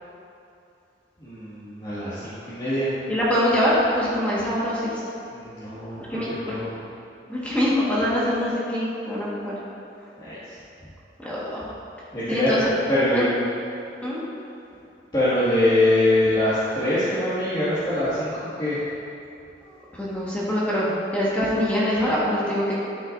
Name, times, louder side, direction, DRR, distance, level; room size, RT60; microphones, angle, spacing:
voice 1, 1.2-2.9 5.3-6.8 10.2-10.6 12.1-12.5 12.9-13.3 15.1-18.8, left 1 dB, 25° left, -15 dB, 2.0 m, -23 dB
voice 2, 3.1-4.9 6.1-6.5 7.3-9.5 11.2-11.7 12.3-12.6 13.1-13.3 14.0-14.2 19.9-22.7, equal, 10° left, -8 dB, 1.5 m, -24 dB
12.5 x 6.3 x 2.6 m, 2.7 s
head